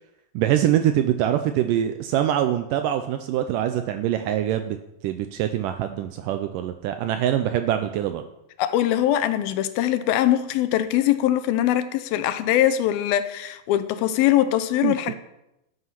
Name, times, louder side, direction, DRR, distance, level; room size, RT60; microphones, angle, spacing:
voice 1, 0.4-4.8 5.0-8.2 14.8-15.1, right 11 dB, 85° right, 2.0 m, -24 dB
voice 2, 8.6-15.1, left 12 dB, 85° left, 2.5 m, -22 dB
13.0 x 8.2 x 5.8 m
omnidirectional pair, 4.3 m